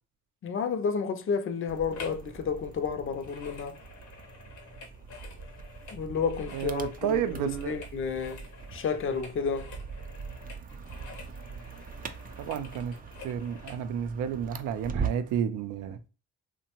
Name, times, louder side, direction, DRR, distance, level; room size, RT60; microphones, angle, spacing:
voice 1, 0.4-3.8 5.9-8.4 8.7-9.7, left 6 dB, 45° left, 0.5 m, -31 dB
sound 1, 1.7-15.4, right 5 dB, 30° right, 0.4 m, -41 dB
sound 2, 1.9-2.3 2.5-13.8 14.4-14.5, left 4 dB, 75° left, 0.9 m, -49 dB
voice 2, 6.5-7.8 12.4-12.9 13.2-16.0, right 8 dB, 85° right, 0.5 m, -31 dB
2.7 x 2.2 x 2.9 m
cardioid pair, 90°, 30 cm